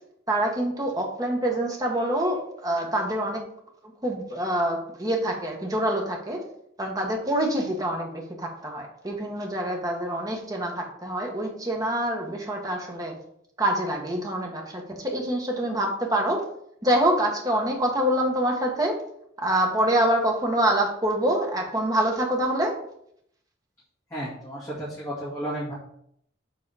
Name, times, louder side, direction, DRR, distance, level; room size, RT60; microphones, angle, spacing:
voice 1, 0.3-3.4 4.0-6.4 6.8-8.1 8.4-13.1 13.6-16.4 16.8-19.0 19.4-22.7, right 1 dB, 20° right, 0 dB, 1.2 m, -25 dB
voice 2, 24.1-25.7, right 1 dB, 15° left, -10 dB, 2.2 m, -33 dB
7.4 x 4.0 x 4.8 m, 0.72 s
head